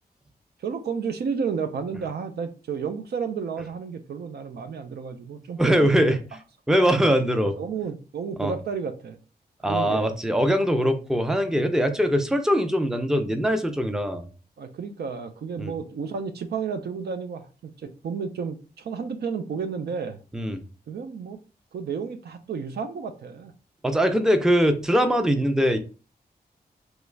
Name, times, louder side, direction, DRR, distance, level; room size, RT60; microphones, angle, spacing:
voice 1, 0.6-6.1 7.4-9.2 9.7-10.1 11.5-11.7 14.6-20.2 20.9-21.4 21.7-23.5, right 6 dB, 80° right, 8 dB, 0.5 m, -32 dB
voice 2, 5.6-6.2 6.7-7.5 8.4-8.5 9.6-14.3 15.6-15.7 20.3-20.6 23.8-25.8, equal, 5° right, 7 dB, 0.5 m, -22 dB
3.1 x 2.3 x 3.3 m, 0.35 s
wide cardioid pair, 90°, 16 cm